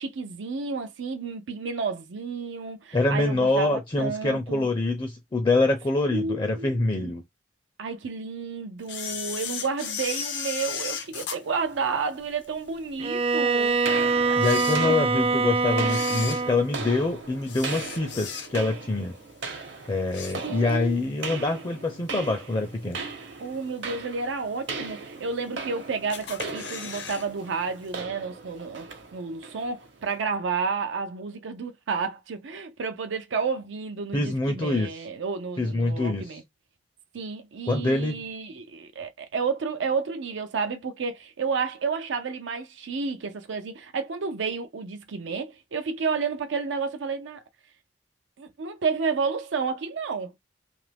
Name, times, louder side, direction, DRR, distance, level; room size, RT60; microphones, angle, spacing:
voice 1, 0.0-4.7 6.1-6.7 7.0-7.1 7.8-13.8 14.2-14.4 14.8-15.0 20.4-21.0 23.4-36.4 37.1-47.4 48.4-50.3, right 5 dB, 90° right, 0.5 m, -31 dB
voice 2, 2.9-7.2 14.4-19.1 19.9-23.0 34.1-34.9 35.6-36.4 37.7-38.3, left 2 dB, 25° left, 0.5 m, -25 dB
Camera, 8.9-12.5 13.0-13.1 13.8-13.9 14.3-15.3 15.8-18.8 19.2-19.5 19.8-20.9 21.2-21.3 22.2-22.3 22.9-23.3 23.7-23.8 24.0-24.1 24.3-24.4 25.2-25.7 26.1-27.3 27.5-27.6 27.9-28.0, left 7 dB, 70° left, 0.7 m, -35 dB
Bowed string instrument, 13.0-16.7, right 4 dB, 30° right, 0.4 m, -24 dB
sound 1, 13.8-30.2, right 4 dB, 70° right, 0.9 m, -38 dB
2.9 x 2.5 x 3.3 m
head